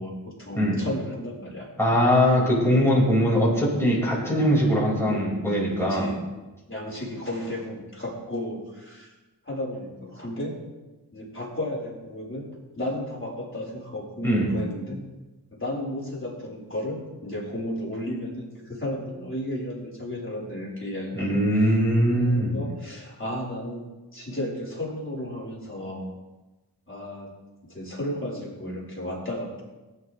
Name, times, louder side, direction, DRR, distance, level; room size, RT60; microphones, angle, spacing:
voice 1, 0.0-1.7 3.6-3.8 5.0-6.3 6.7-9.1 9.4-10.6 11.1-12.5 12.8-15.0 15.5-21.4 22.1-26.1 26.9-27.3 27.6-29.6, left 1 dB, 30° left, -4 dB, 4.3 m, -33 dB
voice 2, 1.8-6.1 14.2-14.5 21.1-22.6, equal, 5° left, -5 dB, 4.7 m, -21 dB
17.5 x 9.7 x 3.2 m, 1.1 s
wide cardioid pair, 45°, 39 cm